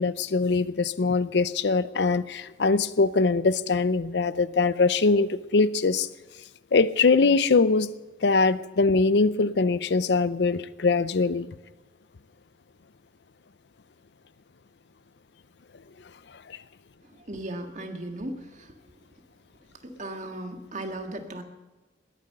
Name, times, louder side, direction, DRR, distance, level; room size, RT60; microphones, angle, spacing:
voice 1, 0.0-6.1 6.7-7.9 8.2-11.5 16.5-16.6, left 4 dB, 65° left, 16 dB, 0.5 m, -22 dB
voice 2, 17.0-18.7 19.8-21.4, right 1 dB, 40° right, 5 dB, 1.7 m, -37 dB
20.0 x 9.3 x 6.7 m, 1.2 s
head